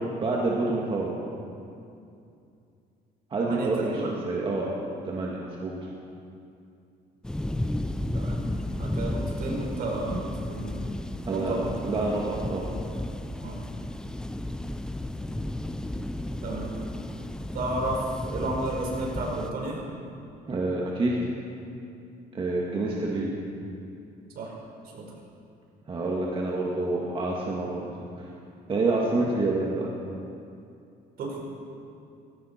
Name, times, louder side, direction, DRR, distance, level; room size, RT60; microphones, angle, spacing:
voice 1, 0.2-1.1 3.3-4.7 5.0-5.7 11.3-11.6 11.8-12.7 20.5-21.2 22.3-23.3 25.9-27.9 28.2-28.3 28.7-29.9, right 2 dB, 30° right, -3 dB, 1.9 m, -27 dB
voice 2, 3.4-4.1 8.1-8.4 8.8-10.7 11.3-11.7 13.4-13.6 16.4-16.7 17.5-19.8 24.3-24.5 24.9-25.0 31.2-31.4, right 2 dB, 65° right, -2 dB, 4.7 m, -32 dB
sound 1, 7.2-19.5, left 1 dB, 5° left, 0.5 m, -33 dB
19.5 x 17.0 x 4.4 m, 2.6 s
cardioid pair, 130°, 17 cm